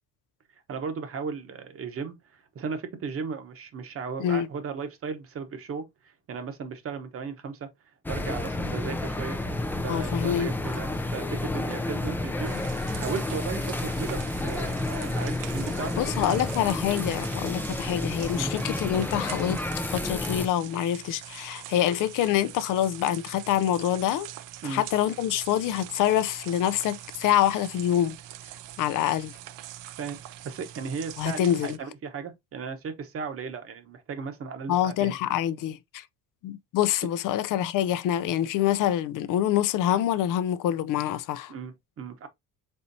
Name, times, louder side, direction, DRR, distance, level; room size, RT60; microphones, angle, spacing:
voice 1, 0.7-7.7 8.1-9.4 9.8-16.5 18.3-18.5 24.6-24.8 30.0-30.2 30.4-35.2 41.5-42.3, right 5 dB, 40° right, 1.0 m, -36 dB
sound 1, 8.1-20.5, left 2 dB, 5° left, 0.3 m, -30 dB
voice 2, 9.9-10.5 16.0-19.6 19.9-24.3 24.6-28.2 28.8-29.3 31.2-31.8 34.7-36.0 36.4-41.5, left 11 dB, 65° left, 0.5 m, -26 dB
sound 2, 12.4-31.8, right 13 dB, 65° right, 0.5 m, -43 dB
4.3 x 4.2 x 2.6 m
cardioid pair, 150°, 35 cm